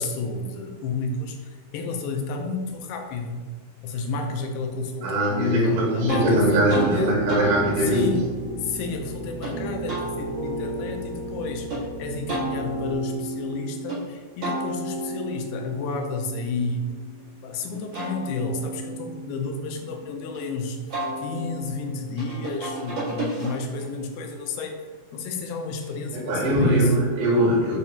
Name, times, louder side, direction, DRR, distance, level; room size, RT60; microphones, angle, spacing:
voice 1, 0.0-3.4 3.8-7.2 7.8-8.3 8.6-16.8 17.4-20.8 21.2-24.8 25.1-26.9, left 3 dB, 90° left, 4 dB, 2.4 m, -31 dB
voice 2, 5.0-8.1 26.3-27.8, right 1 dB, 85° right, -4 dB, 3.4 m, -21 dB
sound 1, 6.1-6.3 6.7-6.9 7.3-9.5 9.9-11.8 12.3-14.0 14.4-17.3 17.7-20.4 20.9-23.9, right 1 dB, 45° right, 1.9 m, -33 dB
Piano, 6.1-13.0, right 1 dB, 65° right, 2.1 m, -34 dB
8.1 x 2.7 x 2.3 m, 1.4 s
omnidirectional pair, 4.2 m